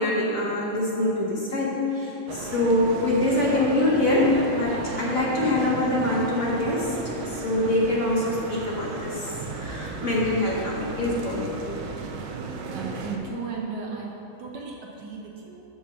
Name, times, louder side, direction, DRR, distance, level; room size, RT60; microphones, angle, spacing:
voice 1, 0.0-11.8, left 1 dB, 50° left, -5 dB, 1.3 m, -25 dB
sound 1, 2.3-13.2, right 4 dB, 85° right, 1.5 m, -34 dB
voice 2, 12.7-14.1 14.4-15.6, right 5 dB, 65° right, -1 dB, 1.2 m, -35 dB
5.8 x 5.5 x 6.3 m, 2.9 s
omnidirectional pair, 2.2 m